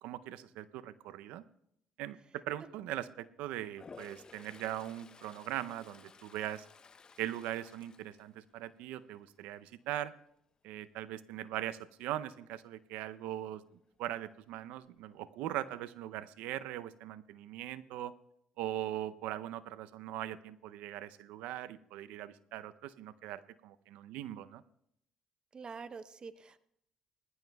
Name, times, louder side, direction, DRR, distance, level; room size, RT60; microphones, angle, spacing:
voice 1, 0.0-1.4 2.0-6.7 7.2-10.1 10.6-13.6 14.0-18.1 18.6-24.6, right 13 dB, 80° right, 14 dB, 0.5 m, -40 dB
Toilet flush, 3.7-8.9 9.3-9.7 14.1-14.2 14.5-15.2, left 5 dB, 40° left, 0.7 m, -56 dB
voice 2, 25.5-26.6, right 5 dB, 40° right, 13 dB, 0.8 m, -46 dB
20.0 x 14.5 x 2.3 m, 0.73 s
supercardioid pair, 60°, 2 cm